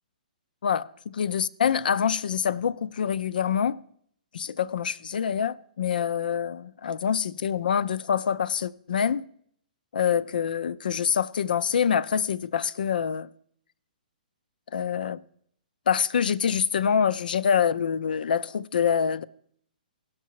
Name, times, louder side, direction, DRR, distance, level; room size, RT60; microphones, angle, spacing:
voice 1, 0.6-3.8 4.3-9.2 9.9-13.3 14.7-15.2 15.9-19.2, left 7 dB, 70° left, 0.4 m, -25 dB
17.0 x 5.9 x 4.6 m
hypercardioid pair, 140°, 5 cm